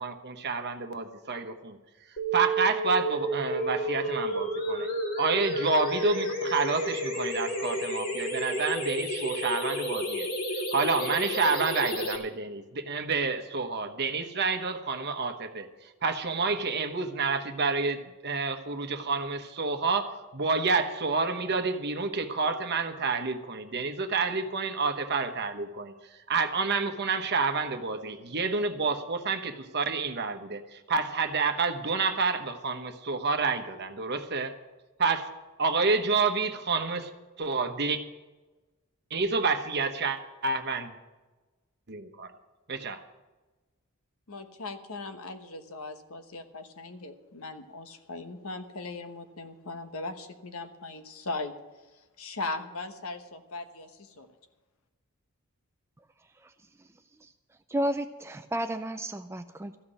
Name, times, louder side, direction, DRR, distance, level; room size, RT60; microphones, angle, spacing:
voice 1, 0.0-1.8 2.3-4.9 5.2-10.3 10.7-25.9 26.3-34.5 35.0-35.3 35.6-37.1 37.4-38.0 39.1-40.9 41.9-42.3 42.7-43.0, right 4 dB, 50° right, 7 dB, 1.1 m, -29 dB
sound 1, 2.2-12.2, right 1 dB, 40° left, 2.3 m, -31 dB
voice 2, 44.3-51.5 52.2-54.3, left 3 dB, 70° left, 8 dB, 1.2 m, -39 dB
voice 3, 57.7-59.7, right 1 dB, 10° right, 8 dB, 0.4 m, -32 dB
14.0 x 6.0 x 10.0 m, 1.2 s
head